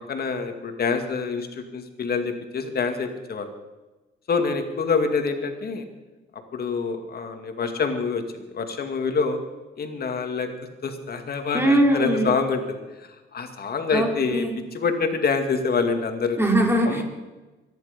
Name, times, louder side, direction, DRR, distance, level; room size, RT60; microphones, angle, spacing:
voice 1, 0.1-3.5 4.3-5.9 6.5-8.2 8.5-9.4 9.8-10.5 10.8-16.4 16.8-17.0, left 5 dB, 50° left, 6 dB, 2.3 m, -26 dB
voice 2, 11.5-12.3 13.9-14.6 16.4-17.0, right 1 dB, 10° right, 1 dB, 4.1 m, -21 dB
24.5 x 11.0 x 5.3 m, 1.2 s
cardioid pair, 90°, 20 cm